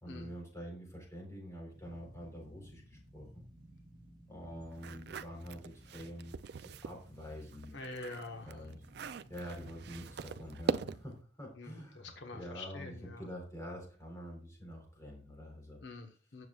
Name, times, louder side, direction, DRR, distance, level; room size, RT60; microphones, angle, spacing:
voice 1, 0.0-3.4 4.3-6.4 6.6-7.7 8.4-8.8 9.3-15.8, equal, 15° left, 0 dB, 3.8 m, -46 dB
sound 1, 1.7-11.1, equal, 30° right, 3.9 m, -57 dB
sound 2, 4.7-7.0 7.4-11.2, right 5 dB, 60° right, 0.4 m, -41 dB
voice 2, 7.7-8.6 11.6-13.3 15.8-16.5, left 2 dB, 70° left, 4 dB, 1.2 m, -46 dB
17.5 x 7.0 x 2.4 m, 0.38 s
head